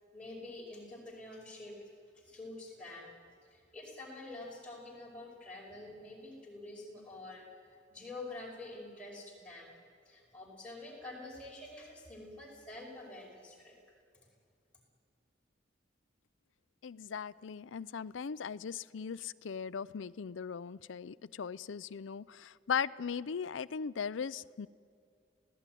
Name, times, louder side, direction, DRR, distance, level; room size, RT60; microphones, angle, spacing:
voice 1, 0.1-1.8 2.2-3.2 3.4-9.8 10.1-13.7, left 2 dB, 5° left, -3 dB, 5.2 m, -47 dB
voice 2, 16.8-24.7, left 6 dB, 85° left, 18 dB, 0.5 m, -38 dB
28.0 x 16.5 x 9.2 m, 2.4 s
head